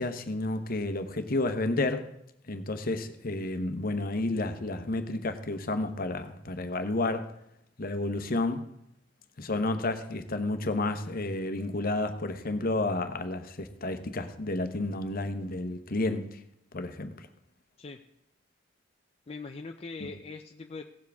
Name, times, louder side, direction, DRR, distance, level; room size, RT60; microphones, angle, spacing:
voice 1, 0.0-2.1 2.5-7.3 7.8-8.6 9.4-16.4 16.7-17.3 20.0-20.1, left 2 dB, 50° left, 9 dB, 1.0 m, -31 dB
voice 2, 19.3-20.8, left 3 dB, 30° left, 4 dB, 0.5 m, -41 dB
17.0 x 7.4 x 3.5 m, 0.79 s
head